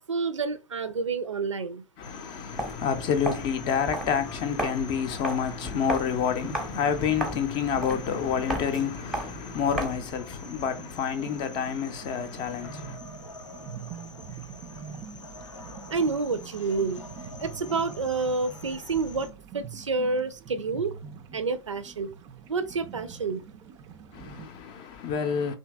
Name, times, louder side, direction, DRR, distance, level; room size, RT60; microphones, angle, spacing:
voice 1, 0.0-1.8 15.9-17.0 17.4-19.3 19.5-20.9 21.3-22.1 22.5-23.4, right 4 dB, 85° right, 0.4 m, -29 dB
sound 1, 2.0-19.3, left 3 dB, 85° left, 0.6 m, -47 dB
voice 2, 2.0-13.0 24.1-25.6, left 7 dB, 30° left, 0.5 m, -29 dB
Walk footsteps, 2.5-10.2, right 1 dB, ahead, 0.8 m, -36 dB
sound 2, 5.6-24.5, right 7 dB, 25° right, 0.4 m, -45 dB
2.8 x 2.6 x 2.2 m
figure-of-eight pair, 105°, 15 cm